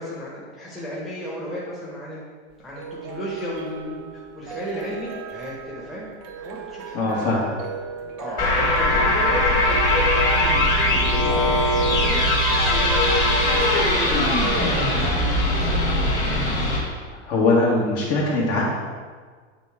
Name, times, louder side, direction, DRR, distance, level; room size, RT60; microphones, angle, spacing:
voice 1, 0.0-2.2 2.6-7.5 8.2-11.2 11.8-14.1 14.6-16.1 16.5-16.8, equal, ahead, -8 dB, 1.3 m, -35 dB
sound 1, 2.5-16.1, right 6 dB, 45° right, 0.9 m, -38 dB
voice 2, 6.9-7.4 8.3-8.4 17.1-18.6, left 2 dB, 40° left, -4 dB, 1.8 m, -21 dB
sound 2, 8.4-16.8, left 1 dB, 20° left, 1.9 m, -20 dB
8.3 x 3.9 x 3.6 m, 1.6 s
supercardioid pair, 140°, 36 cm